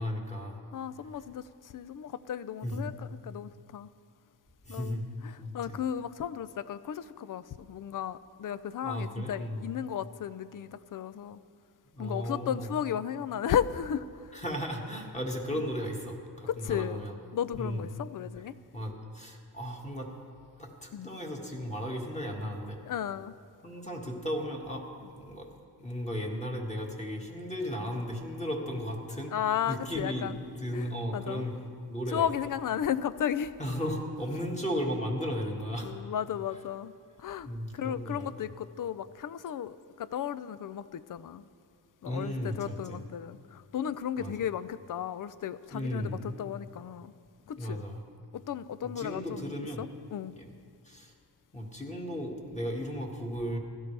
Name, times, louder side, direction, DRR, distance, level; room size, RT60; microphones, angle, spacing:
voice 1, 0.0-0.6 2.6-2.9 4.7-5.0 5.4-5.8 8.8-9.7 11.9-12.7 14.3-17.1 17.6-17.9 18.7-20.1 20.6-22.8 23.6-25.5 25.8-29.3 29.7-30.3 30.6-31.6 31.9-32.3 33.6-35.9 37.4-38.3 42.0-43.0 44.2-44.3 45.7-46.3 47.6-48.0 48.8-49.8 50.4-50.5 50.8-51.1 51.5-53.6, equal, 15° left, 1.9 m, -35 dB
voice 2, 0.7-3.9 4.7-11.4 12.0-14.3 15.5-15.6 16.4-17.0 17.3-18.6 20.9-21.1 22.9-23.3 29.3-30.4 30.7-31.4 32.1-33.5 35.8-37.5 37.7-41.5 42.0-47.1 47.5-47.8 48.3-49.5 49.8-50.3, left 9 dB, 50° left, 0.5 m, -34 dB
16.5 x 12.5 x 3.4 m
cardioid pair, 80°, 41 cm